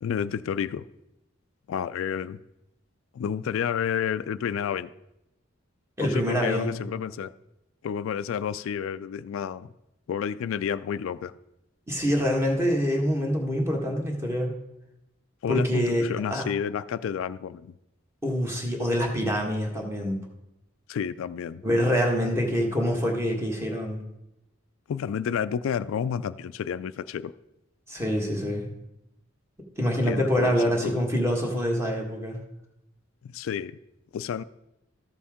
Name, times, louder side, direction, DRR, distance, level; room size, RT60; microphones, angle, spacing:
voice 1, 0.0-0.8 1.7-2.4 3.1-4.9 6.0-7.3 7.8-9.7 10.1-11.3 15.4-17.7 20.9-21.6 24.9-27.3 30.0-30.9 33.2-33.7 34.1-34.4, left 8 dB, 80° left, 14 dB, 0.3 m, -30 dB
voice 2, 6.0-6.8 11.9-14.5 15.5-16.0 16.3-16.5 18.2-20.2 21.6-24.0 27.9-28.7 29.8-32.4, equal, 15° right, 0 dB, 1.5 m, -25 dB
13.0 x 6.9 x 3.6 m, 0.87 s
head